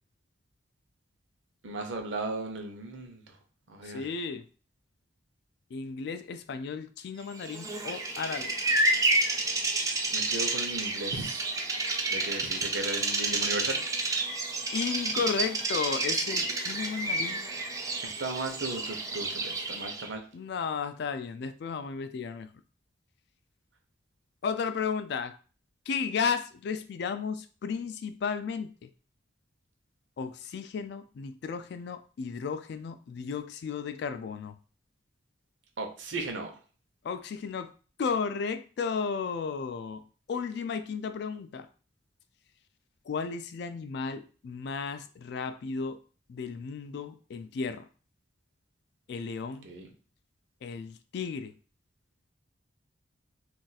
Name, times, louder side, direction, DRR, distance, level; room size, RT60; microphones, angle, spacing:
voice 1, 1.6-3.4 3.7-4.1 10.1-11.5 12.1-13.8 18.0-20.2 35.8-36.6 49.6-49.9, right 2 dB, 70° right, 3 dB, 0.7 m, -36 dB
voice 2, 3.8-4.4 5.7-8.5 12.6-12.7 14.7-17.5 20.3-22.5 24.4-25.3 25.9-28.9 30.2-34.5 37.0-37.7 38.0-40.0 40.3-41.7 43.1-46.0 46.3-47.9 49.1-49.7 50.6-51.5, left 5 dB, 60° left, 11 dB, 0.3 m, -34 dB
Bird vocalization bird call bird song, 7.4-20.1, right 2 dB, 15° right, 0.3 m, -30 dB
2.5 x 2.4 x 4.0 m, 0.38 s
head